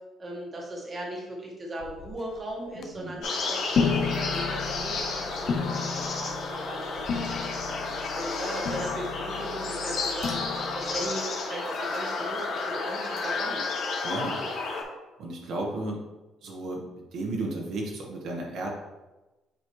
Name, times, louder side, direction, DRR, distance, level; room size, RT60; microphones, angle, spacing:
voice 1, 0.2-7.8 8.1-13.6, right 1 dB, 25° right, -2 dB, 1.4 m, -38 dB
sound 1, 1.8-2.4 2.8-3.0 3.7-11.1, left 5 dB, 45° left, 0.5 m, -33 dB
voice 2, 2.7-3.2 14.0-14.4 15.2-16.0 16.4-18.7, right 2 dB, 65° right, -1 dB, 1.2 m, -34 dB
sound 2, 3.2-14.8, left 3 dB, 65° left, 1.5 m, -32 dB
8.1 x 4.2 x 3.1 m, 1.1 s
cardioid pair, 150°, 0 cm